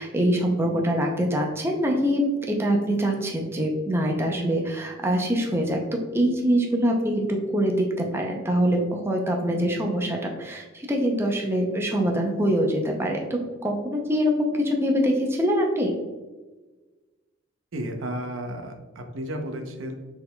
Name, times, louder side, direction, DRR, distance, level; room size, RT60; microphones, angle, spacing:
voice 1, 0.0-2.2 2.5-15.9, equal, 10° right, 0 dB, 0.5 m, -24 dB
voice 2, 17.7-19.9, right 1 dB, 85° right, 4 dB, 0.7 m, -33 dB
6.3 x 3.8 x 2.2 m, 1.2 s
head